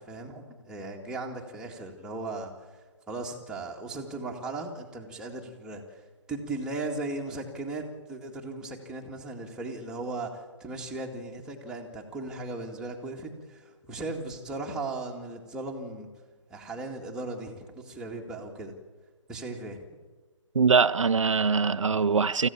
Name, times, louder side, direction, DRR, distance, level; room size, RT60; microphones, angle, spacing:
voice 1, 0.0-2.5 3.1-6.0 6.3-16.1 16.5-18.7 19.3-19.8, right 2 dB, 5° right, 2.1 m, -37 dB
voice 2, 20.5-22.5, right 5 dB, 85° right, 0.7 m, -22 dB
25.0 x 15.0 x 7.1 m
hypercardioid pair, 145°, 16 cm